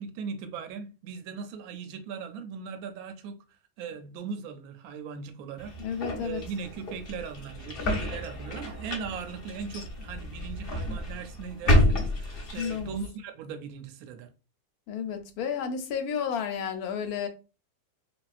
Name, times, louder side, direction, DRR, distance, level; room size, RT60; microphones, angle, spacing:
voice 1, 0.0-3.4 3.8-5.7 6.2-14.3, right 6 dB, 75° right, 1.0 m, -39 dB
sound 1, 5.6-13.1, left 1 dB, 45° left, 0.8 m, -30 dB
voice 2, 5.8-6.5 12.6-13.0 14.9-17.3, left 7 dB, 75° left, 1.0 m, -32 dB
3.4 x 2.3 x 2.4 m
omnidirectional pair, 1.7 m